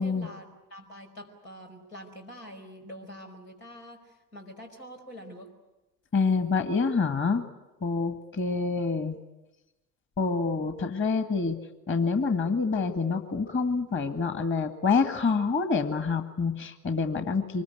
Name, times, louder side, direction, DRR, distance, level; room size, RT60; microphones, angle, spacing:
voice 1, 0.0-5.5, equal, 90° left, 2 dB, 5.1 m, -45 dB
voice 2, 6.1-7.4 7.8-9.2 10.2-11.6 11.9-17.6, left 4 dB, 25° left, 8 dB, 1.9 m, -27 dB
25.0 x 21.0 x 9.5 m, 1.0 s
hypercardioid pair, 80°, 46 cm